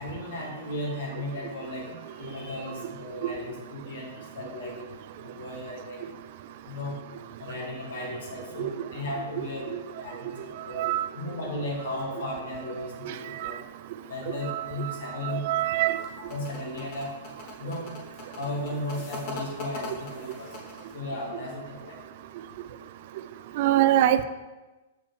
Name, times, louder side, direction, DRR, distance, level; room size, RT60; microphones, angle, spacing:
voice 1, 0.0-1.8 2.1-4.9 5.1-6.0 6.6-7.0 7.4-10.9 11.1-13.6 14.1-15.4 16.2-17.1 17.6-17.9 18.3-20.5 20.9-22.0, left 1 dB, 75° left, -2 dB, 2.1 m, -35 dB
voice 2, 10.8-11.1 13.1-13.2 13.4-13.5 14.5-14.6 15.2-16.0 23.6-24.2, right 13 dB, 45° right, 12 dB, 0.3 m, -23 dB
sound 1, 15.8-21.0, left 2 dB, 35° left, 1.2 m, -40 dB
7.0 x 5.0 x 3.6 m, 1.2 s
hypercardioid pair, 160°, 0 cm